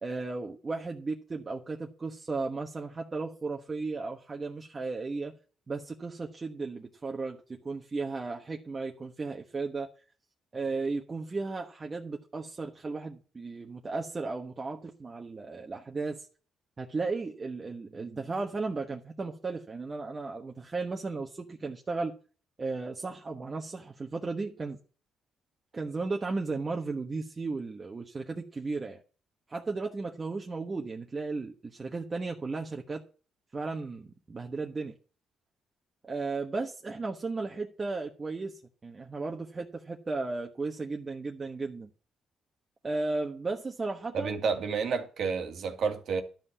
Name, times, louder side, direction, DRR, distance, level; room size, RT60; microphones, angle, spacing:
voice 1, 0.0-5.3 5.7-9.9 10.5-16.3 16.8-22.1 22.6-24.8 25.7-29.0 29.5-33.0 33.5-35.0 36.0-41.9 42.8-44.4, right 3 dB, 30° right, 1.2 m, -35 dB
voice 2, 44.1-46.2, right 5 dB, 65° right, 1.8 m, -30 dB
12.0 x 5.5 x 7.1 m
cardioid pair, 90°, 0 cm